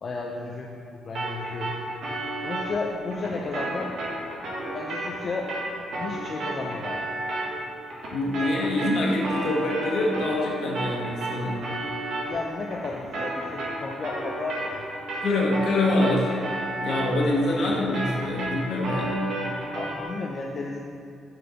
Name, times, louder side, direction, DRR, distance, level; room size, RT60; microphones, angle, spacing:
voice 1, 0.0-1.8 2.4-3.9 4.7-5.5 6.0-7.1 8.4-8.5 12.3-15.0 17.1-17.4 19.7-20.8, left 3 dB, 45° left, -1 dB, 0.6 m, -33 dB
sound 1, 1.1-10.5 10.7-20.0, right 1 dB, 65° right, 1.8 m, -32 dB
voice 2, 8.1-11.6 15.2-16.3 16.8-19.2, left 1 dB, 65° left, -3 dB, 1.5 m, -25 dB
6.7 x 4.4 x 5.2 m, 2.4 s
cardioid pair, 90°, 0 cm